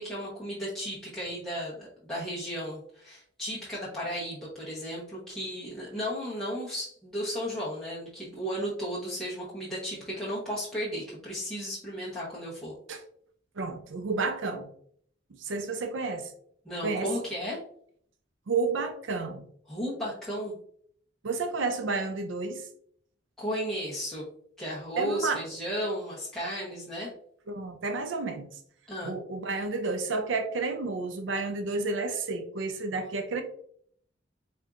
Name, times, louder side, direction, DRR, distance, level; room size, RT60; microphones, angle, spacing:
voice 1, 0.0-12.7 16.6-17.6 19.7-20.5 23.4-24.2 24.6-27.1 28.9-29.2 33.0-33.3, equal, 5° left, -8 dB, 0.9 m, -34 dB
voice 2, 13.6-14.7 15.4-16.3 16.8-17.1 18.5-19.4 21.2-22.7 25.0-25.4 27.5-28.5 29.0-33.4, right 3 dB, 80° right, 6 dB, 0.5 m, -31 dB
4.3 x 3.6 x 2.5 m, 0.63 s
head